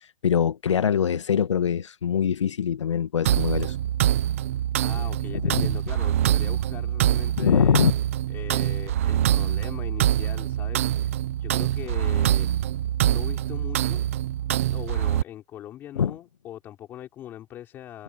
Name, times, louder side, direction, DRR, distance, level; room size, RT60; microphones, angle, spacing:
voice 1, 0.2-3.7 5.4-5.6 7.4-7.9 16.0-16.2, left 8 dB, 65° left, 1.6 m, -23 dB
sound 1, 3.3-15.2, right 12 dB, 25° right, 0.8 m, -24 dB
voice 2, 4.8-7.9 8.3-12.5 13.1-14.1 14.7-18.0, left 12 dB, 10° left, 5.7 m, -40 dB
hypercardioid pair, 175°, 16 cm